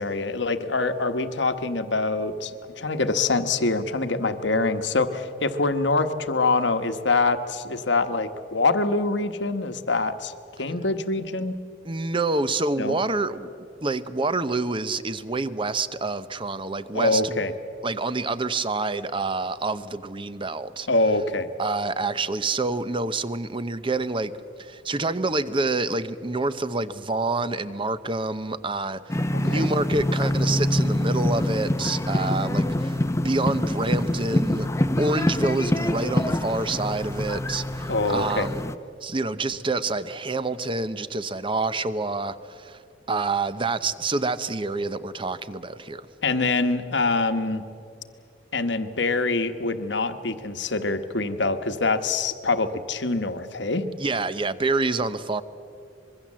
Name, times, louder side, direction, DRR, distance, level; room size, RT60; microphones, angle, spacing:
voice 1, 0.0-10.3 10.6-11.6 12.8-13.0 16.9-17.5 20.9-21.5 29.3-29.7 37.9-38.5 46.2-47.7 48.5-53.9, left 3 dB, 70° left, 1.3 m, -25 dB
voice 2, 11.8-13.5 13.8-17.4 17.8-20.9 21.6-24.3 24.6-34.7 35.0-38.6 39.0-42.8 43.1-46.1 54.0-55.4, right 3 dB, 30° right, 0.8 m, -27 dB
sound 1, 29.1-38.7, left 1 dB, 15° left, 0.8 m, -25 dB
25.0 x 22.0 x 7.5 m
head